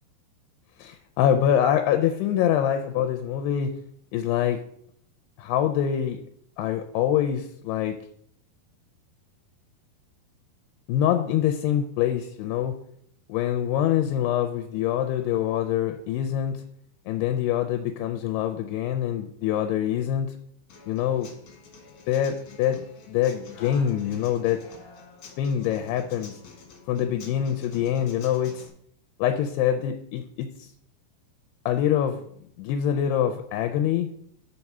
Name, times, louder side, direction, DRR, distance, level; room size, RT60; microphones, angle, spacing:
voice 1, 0.8-3.7 4.1-4.6 5.4-6.2 6.6-8.0 10.9-12.8 13.3-16.6 17.1-20.3 20.9-21.3 22.1-24.6 25.4-26.4 26.9-28.7 29.2-30.7 31.7-32.2 32.6-34.1, left 10 dB, 85° left, 6 dB, 2.5 m, -25 dB
Human voice / Acoustic guitar, 20.7-28.7, left 4 dB, 55° left, 2.1 m, -48 dB
6.4 x 5.9 x 5.4 m, 0.68 s
omnidirectional pair, 5.0 m